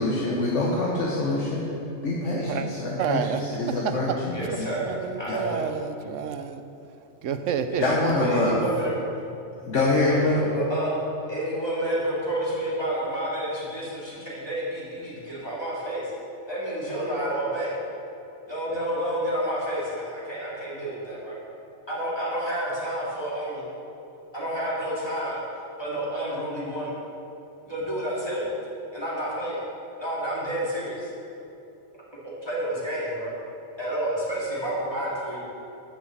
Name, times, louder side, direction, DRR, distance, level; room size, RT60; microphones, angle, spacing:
voice 1, 0.0-1.6 2.0-4.7 5.3-5.4 7.8-8.6 9.6-10.4, left 2 dB, 75° left, -4 dB, 1.4 m, -25 dB
voice 2, 3.0-4.2 4.5-6.6 7.2-7.8 8.2-8.5, right 7 dB, 85° right, 8 dB, 1.0 m, -30 dB
voice 3, 4.3-4.9 5.2-5.7 7.7-7.9 8.2-9.0 10.0-10.9 11.3-16.1 16.5-17.7 18.5-21.4 21.9-23.6 24.3-25.4 25.8-26.9 27.7-28.5 28.9-29.6 30.0-31.1 32.2-33.3 33.8-35.4, right 1 dB, 20° left, -7 dB, 2.8 m, -30 dB
10.5 x 6.2 x 7.3 m, 2.8 s
omnidirectional pair, 1.2 m